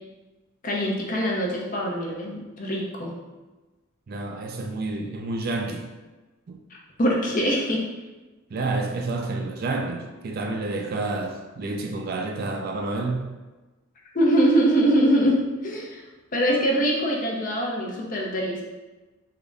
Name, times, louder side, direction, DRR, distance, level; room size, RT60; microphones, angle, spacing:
voice 1, 0.6-3.1 7.0-7.8 14.1-16.0 16.3-18.6, right 1 dB, 40° left, -2 dB, 0.6 m, -23 dB
voice 2, 4.1-5.9 6.5-6.6 8.5-13.3, right 2 dB, 45° right, 3 dB, 0.4 m, -29 dB
3.7 x 2.1 x 3.4 m, 1.2 s
head